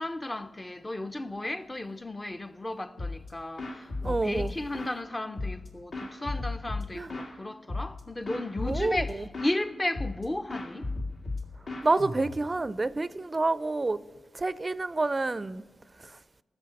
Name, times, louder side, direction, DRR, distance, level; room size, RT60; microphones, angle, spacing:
voice 1, 0.0-10.9, left 1 dB, 25° left, 0.6 m, -34 dB
Jarbie Drum Intro, 3.0-3.3 3.6-5.0 5.4-7.3 7.7-8.0 8.3-9.6 9.9-10.2 10.5-12.6, left 2 dB, 70° left, 2.1 m, -35 dB
voice 2, 4.0-4.5 6.9-7.1 8.6-9.0 11.8-14.0 14.3-15.6 16.0-16.2, right 3 dB, 30° right, 0.4 m, -28 dB
15.0 x 6.4 x 7.5 m
cardioid pair, 65°, 0 cm